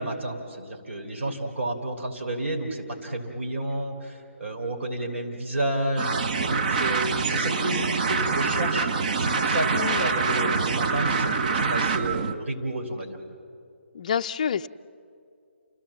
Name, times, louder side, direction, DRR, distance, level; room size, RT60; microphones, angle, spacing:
voice 1, 0.0-8.9 9.2-13.2, right 1 dB, 65° right, 3 dB, 3.5 m, -31 dB
sound 1, 6.0-12.3, right 5 dB, 35° right, 0.8 m, -25 dB
voice 2, 9.7-10.1 13.9-14.7, left 7 dB, 35° left, 11 dB, 0.4 m, -28 dB
29.5 x 15.5 x 7.3 m, 2.4 s
hypercardioid pair, 170°, 7 cm